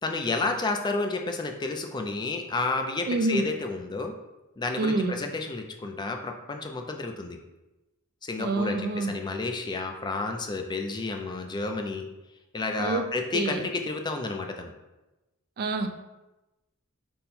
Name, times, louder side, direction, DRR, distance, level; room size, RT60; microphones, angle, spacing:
voice 1, 0.0-4.1 4.6-7.4 8.2-12.1 12.5-14.7, left 3 dB, 20° left, 4 dB, 0.4 m, -31 dB
voice 2, 3.1-3.4 4.8-5.2 8.4-9.1 12.8-13.1 13.3-13.7 15.6-15.9, right 2 dB, 45° right, 7 dB, 0.4 m, -27 dB
5.4 x 2.1 x 4.2 m, 1.0 s
head